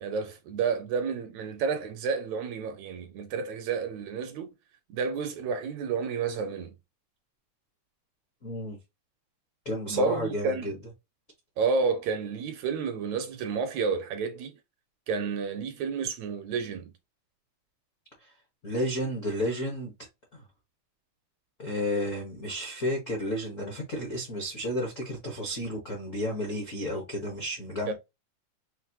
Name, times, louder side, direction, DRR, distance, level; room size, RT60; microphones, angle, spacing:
voice 1, 0.0-4.5 4.9-6.8 9.9-10.8 11.6-14.5 15.1-16.9 27.9-28.0, right 5 dB, 75° right, 1.7 m, -30 dB
voice 2, 8.4-8.8 9.6-10.8 18.2-18.3 18.6-19.9 20.3-20.4 21.6-27.9, left 1 dB, 60° left, 0.8 m, -32 dB
5.8 x 2.5 x 2.8 m
omnidirectional pair, 3.6 m